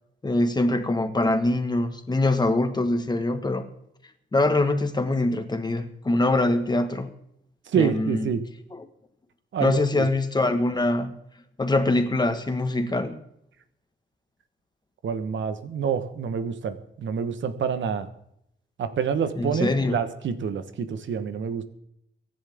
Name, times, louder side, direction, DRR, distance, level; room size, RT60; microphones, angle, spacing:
voice 1, 0.2-3.7 4.3-7.1 7.7-8.3 8.7-8.8 9.6-11.2 11.6-13.2 19.3-20.0, left 2 dB, 20° left, 8 dB, 1.5 m, -23 dB
voice 2, 7.7-8.4 9.5-10.0 15.0-18.1 18.8-21.6, right 7 dB, 75° right, 10 dB, 1.3 m, -27 dB
24.0 x 10.5 x 3.6 m, 0.74 s
cardioid pair, 120°, 20 cm